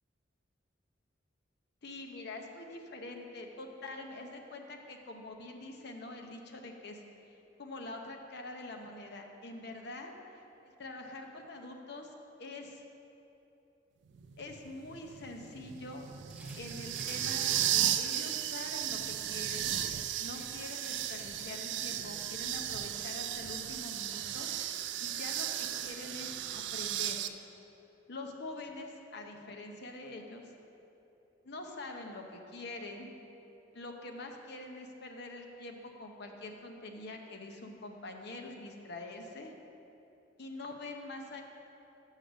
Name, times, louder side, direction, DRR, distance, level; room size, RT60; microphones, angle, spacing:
voice 1, 1.8-10.1 10.6-12.1 12.4-12.8 14.4-16.1 16.6-19.7 20.2-27.3 28.1-30.5 31.4-33.1 33.7-39.5 40.4-41.4, left 2 dB, 60° left, 3 dB, 0.8 m, -45 dB
sound 1, 14.1-27.3, right 11 dB, 65° right, 0.4 m, -35 dB
sound 2, 16.3-21.9, right 2 dB, 5° right, 0.7 m, -52 dB
6.5 x 6.4 x 6.3 m, 2.9 s
head